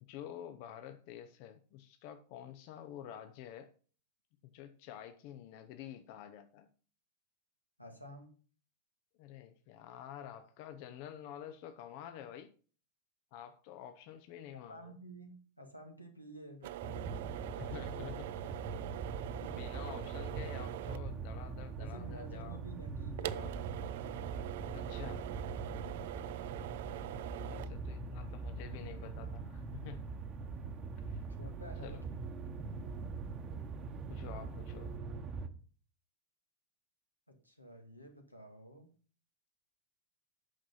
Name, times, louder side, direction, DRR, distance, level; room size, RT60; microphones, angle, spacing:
voice 1, 0.0-3.7 4.4-6.7 9.2-12.5 13.3-14.9 17.6-18.3 19.4-22.6 24.7-25.3 27.5-30.1 31.1-31.2 31.8-32.0 34.1-34.9, left 10 dB, 45° left, 0.7 m, -49 dB
voice 2, 7.8-8.3 14.5-17.2 17.5-18.1 19.4-19.6 21.8-23.7 30.5-30.8 31.4-32.7 37.3-38.9, right 1 dB, 90° left, 1.9 m, -52 dB
sound 1, 16.6-35.0, right 14 dB, 55° right, 0.4 m, -46 dB
sound 2, 16.8-35.5, right 4 dB, 30° right, 1.1 m, -42 dB
8.8 x 6.2 x 5.5 m
figure-of-eight pair, 90°, 0 cm